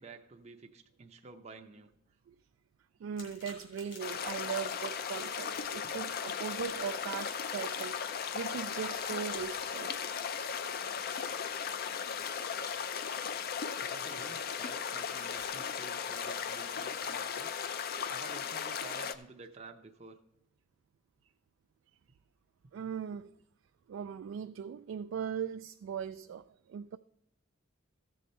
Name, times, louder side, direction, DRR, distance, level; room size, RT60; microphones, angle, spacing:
voice 1, 0.0-1.9 13.9-17.5 18.1-20.2, right 3 dB, 35° right, 0.6 m, -51 dB
voice 2, 3.0-9.9 22.7-23.3 23.9-27.0, right 7 dB, 75° right, 0.3 m, -39 dB
sound 1, 3.1-17.8, left 3 dB, 70° left, 2.8 m, -58 dB
sound 2, 4.0-19.1, left 7 dB, 50° left, 0.4 m, -37 dB
14.5 x 6.6 x 4.3 m
head